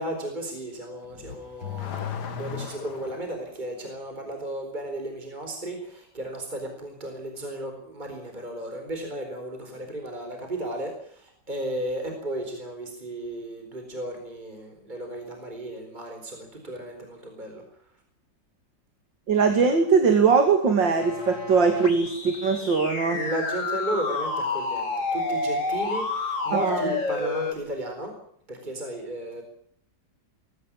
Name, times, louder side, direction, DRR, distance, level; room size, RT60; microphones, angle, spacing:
voice 1, 0.0-17.6 23.1-28.1 28.5-29.4, right 1 dB, 25° right, 4 dB, 4.6 m, -34 dB
Car / Accelerating revving vroom, 1.1-3.3, left 8 dB, 65° left, 2.2 m, -35 dB
voice 2, 19.3-23.2 26.5-26.9, right 5 dB, 90° right, 5 dB, 3.2 m, -21 dB
sound 1, 21.0-27.5, left 3 dB, 45° left, 2.8 m, -29 dB
22.5 x 16.0 x 8.8 m, 0.64 s
omnidirectional pair, 1.9 m